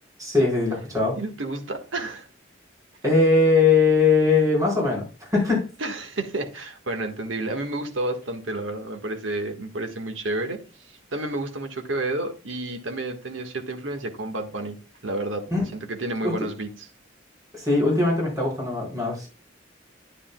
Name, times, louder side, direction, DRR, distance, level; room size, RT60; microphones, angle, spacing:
voice 1, 0.2-1.2 3.0-5.6 15.5-15.6 16.2-16.3 17.5-19.3, left 3 dB, 20° right, -3 dB, 4.5 m, -20 dB
voice 2, 1.1-2.3 5.8-14.8 15.0-15.4 15.7-16.9, right 2 dB, 90° right, 4 dB, 1.5 m, -30 dB
9.8 x 9.8 x 2.2 m, 0.31 s
head